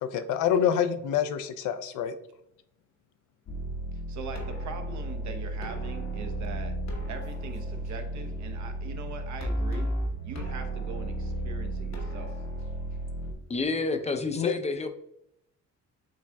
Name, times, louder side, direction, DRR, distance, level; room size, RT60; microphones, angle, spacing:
voice 1, 0.0-2.1 14.4-14.5, left 8 dB, 85° left, 10 dB, 0.5 m, -26 dB
sound 1, 3.5-13.3, right 1 dB, 65° left, 1.1 m, -33 dB
voice 2, 4.1-6.8 7.1-9.9 10.2-12.3, right 5 dB, 70° right, 6 dB, 0.8 m, -42 dB
voice 3, 13.5-14.9, left 3 dB, 20° left, 7 dB, 0.5 m, -29 dB
7.2 x 2.5 x 2.2 m, 0.77 s
cardioid pair, 90°, 30 cm